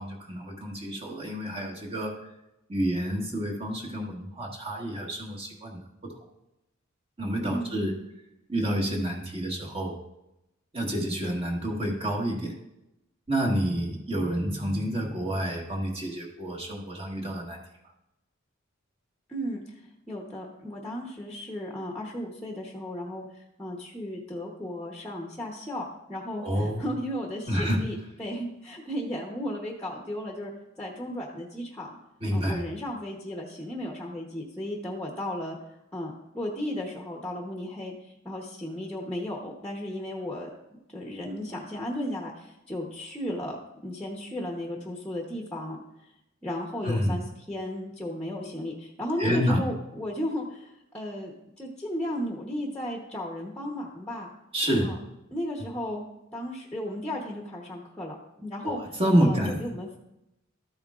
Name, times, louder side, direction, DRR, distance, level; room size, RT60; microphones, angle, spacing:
voice 1, 0.0-2.2 2.7-6.1 7.2-8.0 8.5-10.0 10.7-12.5 13.3-17.6 26.4-26.8 27.5-27.8 32.2-32.6 46.8-47.2 49.2-49.6 54.5-55.0 58.6-58.7 59.0-59.7, equal, 30° right, -1 dB, 1.6 m, -28 dB
voice 2, 19.3-19.8 20.1-30.5 30.8-31.9 32.3-35.6 35.9-40.5 40.9-43.6 43.8-45.8 46.4-54.3 54.8-55.0 55.3-56.0 56.3-58.8 59.2-60.0, left 1 dB, 5° left, -1 dB, 1.0 m, -35 dB
13.0 x 8.7 x 2.5 m, 0.89 s
head